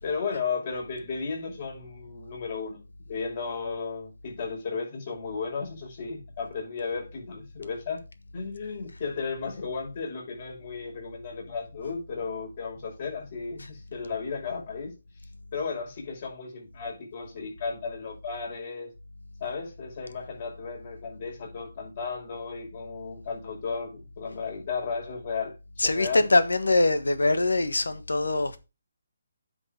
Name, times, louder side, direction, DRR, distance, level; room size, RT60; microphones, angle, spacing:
voice 1, 0.0-8.0 8.3-14.9 15.5-18.9 19.4-26.3, left 5 dB, 45° left, 5.5 m, -34 dB
voice 2, 25.8-28.6, left 2 dB, 90° left, 1.4 m, -23 dB
9.6 x 5.5 x 5.2 m
figure-of-eight pair, 155°, 0 cm